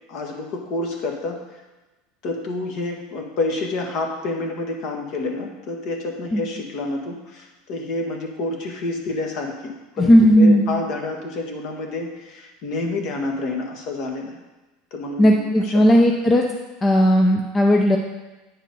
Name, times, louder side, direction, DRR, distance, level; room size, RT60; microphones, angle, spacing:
voice 1, 0.1-1.4 2.2-14.4 14.9-15.7, left 2 dB, 50° left, 2 dB, 1.5 m, -28 dB
voice 2, 10.0-10.6 15.2-16.4 16.8-18.0, equal, 15° left, 1 dB, 0.6 m, -15 dB
9.1 x 4.7 x 5.3 m, 1.1 s
supercardioid pair, 145°, 0 cm